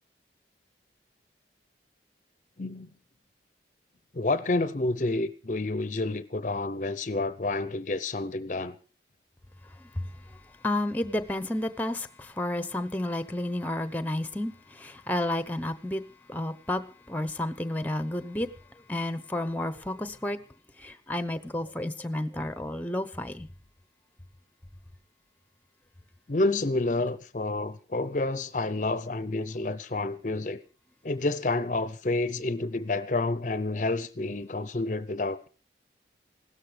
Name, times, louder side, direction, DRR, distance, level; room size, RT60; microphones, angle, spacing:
voice 1, 2.6-2.9 4.1-8.8 26.3-30.6 31.0-35.5, left 2 dB, 45° left, 0.7 m, -29 dB
voice 2, 10.6-16.0 16.3-16.8 17.1-18.5 18.9-20.4 20.8-23.5, left 1 dB, 10° left, 0.9 m, -31 dB
16.5 x 13.0 x 5.1 m
head